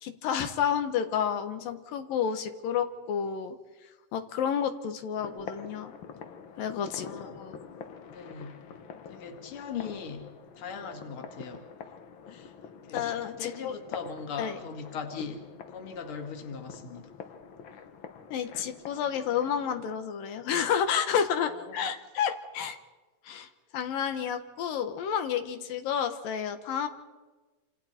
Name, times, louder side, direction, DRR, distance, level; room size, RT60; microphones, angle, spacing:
voice 1, 0.0-3.6 4.1-5.9 6.6-7.6 12.9-13.8 14.4-14.6 18.3-22.8 23.2-26.9, left 8 dB, 90° left, 7 dB, 3.1 m, -30 dB
sound 1, 5.1-20.0, left 6 dB, 65° left, 1.2 m, -46 dB
voice 2, 6.8-7.4 8.1-8.6 9.1-11.7 12.3-12.5 12.9-17.1 21.5-21.8, left 6 dB, 45° left, 5 dB, 2.7 m, -40 dB
28.0 x 27.5 x 4.4 m, 1.2 s
omnidirectional pair, 3.9 m